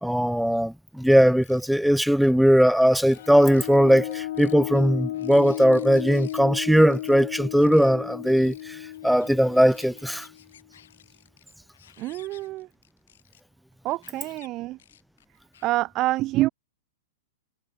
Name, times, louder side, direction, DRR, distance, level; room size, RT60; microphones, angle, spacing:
voice 1, 0.0-8.8 9.0-10.3, equal, ahead, 0.4 m, -19 dB
sound 1, 1.2-1.9 2.2-2.3 2.9-3.8 4.1-6.4 6.7-7.1 7.6-7.9 8.3-13.4 13.9-14.5 14.8-15.8, left 10 dB, 65° left, 5.2 m, -55 dB
sound 2, 3.1-10.5, left 14 dB, 50° left, 1.2 m, -34 dB
voice 2, 12.0-12.7 13.8-14.8 15.6-16.5, right 17 dB, 20° right, 0.7 m, -26 dB
supercardioid pair, 175°, 0 cm